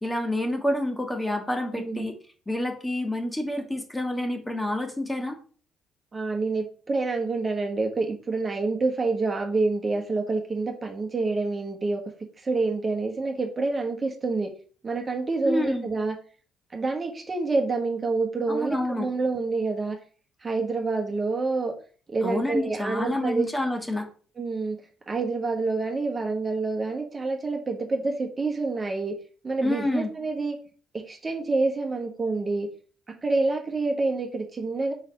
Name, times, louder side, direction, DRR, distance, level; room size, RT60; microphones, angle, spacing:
voice 1, 0.0-2.2 2.5-5.4 15.4-15.9 18.5-19.1 22.2-24.1 29.6-30.1, left 1 dB, 15° left, 4 dB, 1.5 m, -28 dB
voice 2, 1.7-2.1 6.1-12.0 12.4-14.5 14.8-16.1 16.7-20.0 20.4-21.7 22.1-23.5 24.4-24.8 25.1-29.1 29.4-30.6 30.9-32.7 33.2-34.9, right 3 dB, 30° right, 2 dB, 1.4 m, -27 dB
5.0 x 4.0 x 5.2 m, 0.41 s
hypercardioid pair, 50°, 0 cm